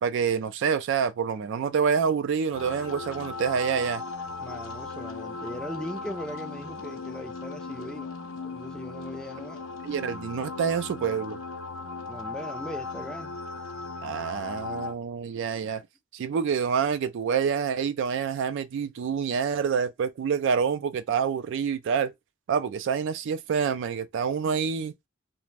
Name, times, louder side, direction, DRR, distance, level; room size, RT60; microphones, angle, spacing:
voice 1, 0.0-4.0 9.8-11.4 14.0-15.8 16.1-22.1 22.5-25.1, right 6 dB, 65° right, 0.3 m, -27 dB
sound 1, 2.5-14.9, left 3 dB, 75° left, 0.5 m, -37 dB
voice 2, 4.4-8.2 8.4-9.6 12.1-13.4, equal, 5° left, 0.4 m, -39 dB
2.4 x 2.0 x 3.2 m
head